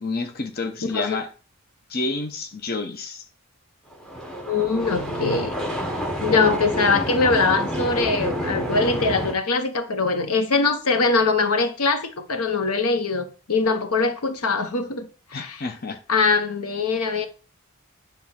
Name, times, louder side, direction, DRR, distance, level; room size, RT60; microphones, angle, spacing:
voice 1, 0.0-1.3 1.9-3.2 15.3-16.0, left 3 dB, 45° left, 0.9 m, -29 dB
sound 1, 3.9-9.3, equal, 5° left, 1.1 m, -28 dB
voice 2, 4.5-5.6 6.2-15.6 16.1-17.3, left 4 dB, 85° left, 1.0 m, -22 dB
9.7 x 3.6 x 5.9 m
head